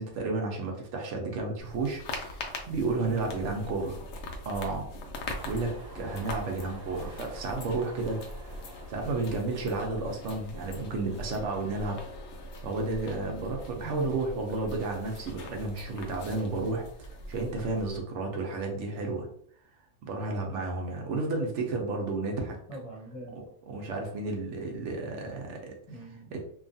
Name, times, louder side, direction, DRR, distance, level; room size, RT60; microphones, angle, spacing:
voice 1, 0.0-3.9 4.4-4.9 5.4-8.2 8.9-12.0 12.6-19.3 20.0-22.6 23.3-23.4 23.7-25.7 26.3-26.4, right 3 dB, 75° right, 2 dB, 0.9 m, -32 dB
sound 1, 1.6-18.0, left 1 dB, 85° left, 1.0 m, -42 dB
voice 2, 3.0-3.5 3.8-4.0 13.8-14.1 22.7-23.5 25.9-26.4, right 2 dB, 30° left, -5 dB, 0.8 m, -42 dB
Train, 5.3-12.7 13.1-13.9, right 2 dB, 40° right, 0.7 m, -51 dB
2.7 x 2.3 x 2.6 m, 0.64 s
omnidirectional pair, 1.3 m